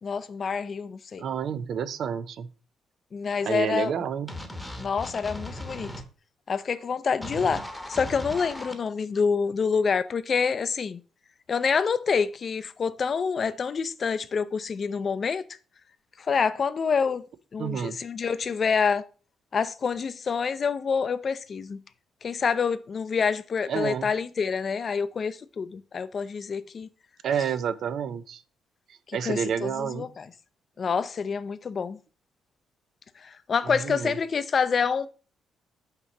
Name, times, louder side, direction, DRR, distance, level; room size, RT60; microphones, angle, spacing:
voice 1, 0.0-1.2 3.1-3.9 4.8-5.9 6.5-7.6 7.9-11.0 11.5-15.4 16.2-17.2 17.5-19.1 19.5-21.8 22.2-26.9 29.1-30.3 30.8-32.0 33.2-35.1, left 5 dB, 45° left, 0.5 m, -27 dB
voice 2, 1.2-2.5 3.4-4.4 17.6-18.0 23.7-24.1 27.2-28.4 29.1-30.1 33.6-34.2, right 7 dB, 65° right, 0.5 m, -29 dB
sound 1, 4.3-6.0 7.2-8.7, left 1 dB, 5° left, 1.0 m, -37 dB
5.9 x 2.9 x 5.4 m
cardioid pair, 90°, 0 cm